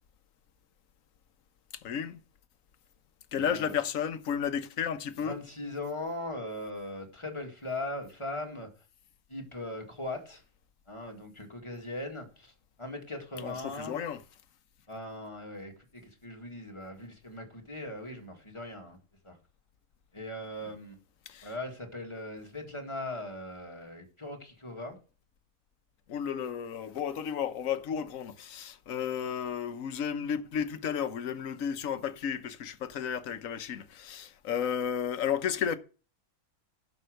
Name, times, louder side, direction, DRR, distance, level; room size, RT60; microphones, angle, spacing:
voice 1, 1.8-2.2 3.3-5.4 13.4-14.2 21.3-21.5 26.1-35.8, left 8 dB, 65° left, 1.2 m, -33 dB
voice 2, 3.3-3.8 5.2-8.7 9.3-10.4 10.9-14.0 14.9-19.0 19.2-19.4 20.1-21.0 21.4-25.0, left 1 dB, 20° left, 1.9 m, -39 dB
11.5 x 5.4 x 6.4 m
omnidirectional pair, 1.5 m